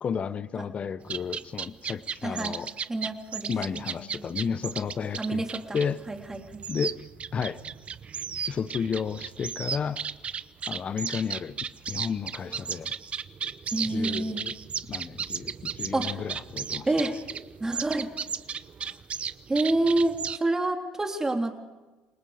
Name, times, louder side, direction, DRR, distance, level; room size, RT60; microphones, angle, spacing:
voice 1, 0.0-2.7 3.5-5.4 5.7-6.0 6.7-7.0 7.3-7.6 8.5-10.0 10.7-11.6 11.9-12.9 13.8-14.5 14.9-16.9, left 6 dB, 40° left, 15 dB, 1.0 m, -32 dB
sound 1, 1.0-20.4, right 7 dB, 40° right, 0.8 m, -35 dB
voice 2, 2.2-2.6 2.9-4.3 5.2-5.8 6.1-6.6 13.7-14.4 15.9-16.2 16.9-17.2 17.6-18.1 19.5-21.5, right 2 dB, 20° right, 3 dB, 3.4 m, -28 dB
28.5 x 19.0 x 5.1 m, 1.2 s
supercardioid pair, 80°, 3 cm